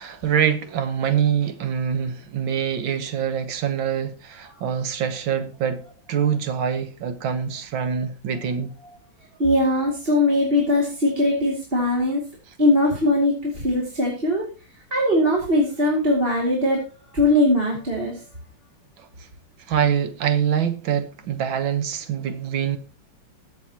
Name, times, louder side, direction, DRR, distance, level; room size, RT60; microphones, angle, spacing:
voice 1, 0.0-5.8 6.1-8.7 19.0-19.1 19.7-22.8, right 8 dB, 80° right, 1.9 m, -24 dB
voice 2, 9.4-12.2 12.6-14.5 14.9-16.8 17.1-18.2, left 1 dB, 30° right, 2.5 m, -20 dB
21.5 x 7.1 x 2.9 m
omnidirectional pair, 2.2 m